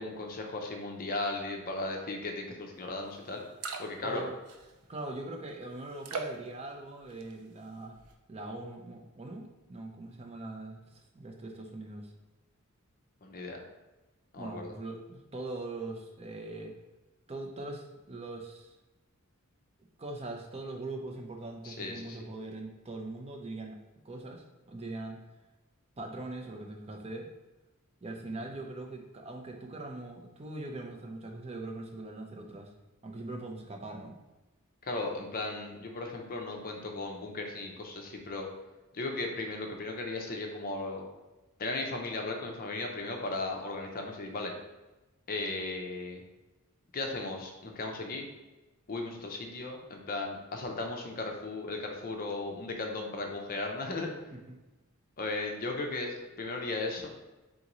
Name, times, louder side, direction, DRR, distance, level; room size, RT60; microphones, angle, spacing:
voice 1, 0.0-3.4 3.8-4.2 13.2-13.6 14.3-14.7 21.6-22.2 34.8-38.5 38.9-41.1 41.6-44.5 45.3-46.2 46.9-48.3 48.9-54.1 55.2-57.1, left 2 dB, 40° left, 2 dB, 0.6 m, -36 dB
sound 1, 3.0-3.1 3.4-4.1 4.4-5.0 6.0-6.5 7.0-7.5 7.9-8.1, right 4 dB, 85° right, 0.5 m, -39 dB
voice 2, 4.0-4.3 4.9-7.9 8.3-10.8 11.1-12.1 14.4-16.7 17.3-18.7 20.0-23.8 24.0-25.2 26.0-27.3 28.0-32.7 33.0-34.2 54.3-54.6, right 2 dB, 30° right, 2 dB, 0.5 m, -41 dB
3.8 x 3.7 x 3.0 m, 1.1 s
head